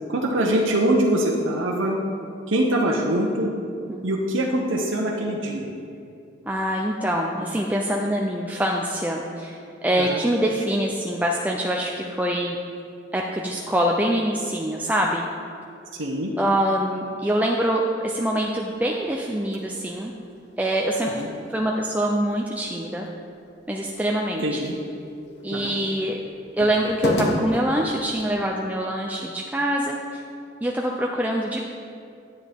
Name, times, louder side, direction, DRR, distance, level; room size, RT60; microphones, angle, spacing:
voice 1, 0.1-2.0 2.5-3.5 4.0-5.7 10.0-10.2 15.9-16.3 21.1-21.3 24.4-24.7 25.5-25.7, right 1 dB, 80° right, -1 dB, 0.9 m, -23 dB
voice 2, 6.5-12.6 13.1-15.3 16.4-20.1 20.6-21.2 21.5-23.1 23.7-24.7 25.4-26.2 26.5-30.2 30.6-31.6, right 1 dB, 10° right, 0 dB, 0.4 m, -24 dB
sound 1, 18.1-28.4, left 1 dB, 55° left, 1.1 m, -34 dB
9.9 x 9.0 x 3.5 m, 2.5 s
head